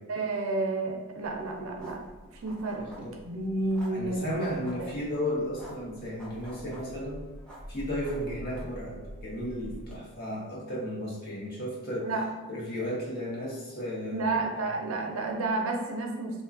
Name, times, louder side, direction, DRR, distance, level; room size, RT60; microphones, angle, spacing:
voice 1, 0.1-2.0 2.4-2.9 3.2-4.9 12.0-12.2 14.1-16.4, right 2 dB, 65° right, 1 dB, 0.4 m, -31 dB
sound 1, 1.2-9.9, equal, 5° left, 0.5 m, -46 dB
voice 2, 2.8-3.1 3.9-7.2 7.7-12.1 12.5-14.3 14.6-14.7, equal, 45° left, -4 dB, 0.7 m, -34 dB
3.0 x 2.2 x 2.4 m, 1.2 s
head